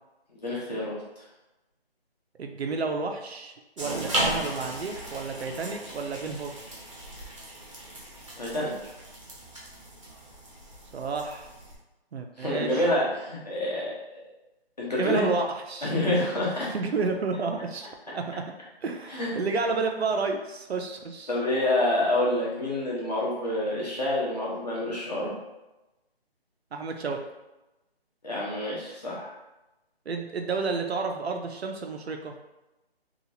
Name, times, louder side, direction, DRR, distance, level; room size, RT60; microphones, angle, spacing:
voice 1, 0.3-1.2 8.4-8.7 12.4-14.2 14.8-15.3 15.8-16.7 19.1-19.5 21.3-25.3 28.2-29.3, left 1 dB, 40° left, -5 dB, 0.9 m, -28 dB
voice 2, 2.4-6.5 10.9-11.5 12.1-12.8 15.0-15.9 16.7-18.3 18.8-21.3 26.7-27.2 30.1-32.3, right 4 dB, 80° right, 4 dB, 0.6 m, -31 dB
sound 1, 3.8-11.8, right 1 dB, 30° right, 0.6 m, -36 dB
2.9 x 2.4 x 2.7 m, 1.0 s
figure-of-eight pair, 170°, 32 cm